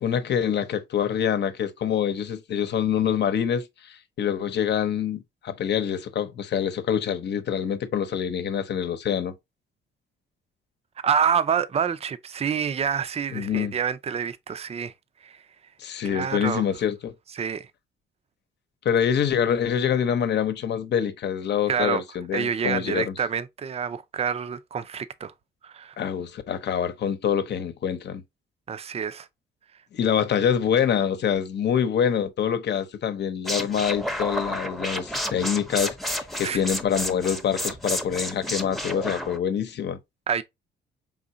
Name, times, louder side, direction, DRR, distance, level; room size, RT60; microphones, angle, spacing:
voice 1, 0.0-9.3 13.3-13.7 15.8-17.1 18.8-23.1 26.0-28.2 29.9-40.0, left 8 dB, 60° left, 0.9 m, -25 dB
voice 2, 11.0-14.9 15.2-15.4 16.0-16.6 17.3-17.7 21.7-22.0 22.3-25.3 25.6-26.0 28.7-29.3 36.4-36.6 40.3-40.4, right 7 dB, 30° right, 0.5 m, -27 dB
sound 1, 33.4-39.4, equal, ahead, 0.8 m, -31 dB
4.7 x 3.8 x 2.7 m
cardioid pair, 90°, 20 cm